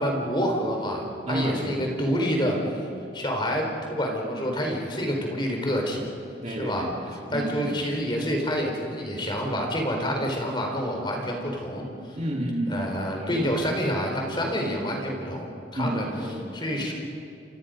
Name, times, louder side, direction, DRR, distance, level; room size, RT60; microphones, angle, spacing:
voice 1, 0.0-2.6 3.1-6.1 6.6-6.8 7.3-12.2 12.7-16.0 16.5-16.9, equal, 25° left, 1 dB, 4.5 m, -28 dB
voice 2, 1.3-1.9 6.4-8.1 12.2-13.5 15.7-16.9, right 1 dB, 35° right, 0 dB, 2.1 m, -31 dB
29.0 x 24.5 x 5.3 m, 2.5 s
head